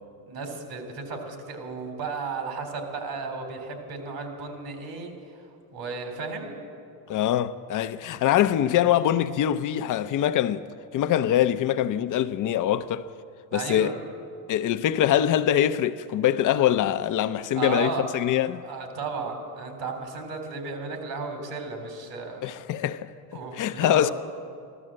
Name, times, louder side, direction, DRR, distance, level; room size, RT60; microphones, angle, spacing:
voice 1, 0.3-5.1 5.7-6.5 13.5-13.9 17.5-18.4 18.6-22.5 23.3-24.1, right 4 dB, 65° right, 3.6 m, -34 dB
voice 2, 7.1-10.6 10.9-13.1 13.5-14.0 14.5-18.6 22.4-23.1 23.5-24.1, left 11 dB, 40° left, 0.6 m, -23 dB
14.5 x 12.5 x 7.6 m
supercardioid pair, 95°, 47 cm